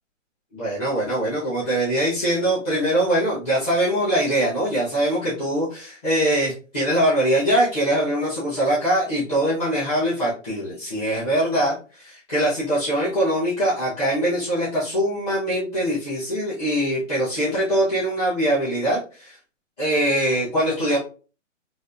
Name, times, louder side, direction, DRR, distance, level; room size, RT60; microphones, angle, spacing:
voice 1, 0.5-19.4 19.8-21.0, right 1 dB, 30° left, -11 dB, 1.2 m, -22 dB
3.2 x 2.5 x 2.7 m, 0.37 s
hypercardioid pair, 160°, 38 cm